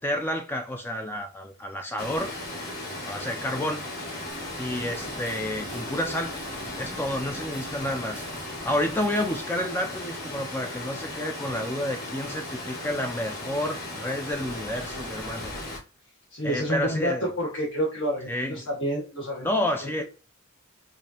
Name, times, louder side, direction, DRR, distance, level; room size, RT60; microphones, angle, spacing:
voice 1, 0.0-2.3 3.1-3.9 4.6-6.4 6.8-8.2 8.6-15.5 16.4-17.3 18.3-18.6 19.4-20.0, left 1 dB, 10° left, 0.3 m, -30 dB
Water, 2.0-15.8, left 1 dB, 40° left, 1.6 m, -36 dB
sound 1, 4.3-9.4, right 3 dB, 25° right, 0.6 m, -45 dB
voice 2, 16.3-19.5 19.8-20.0, equal, 65° left, 1.4 m, -29 dB
4.8 x 2.6 x 2.8 m
head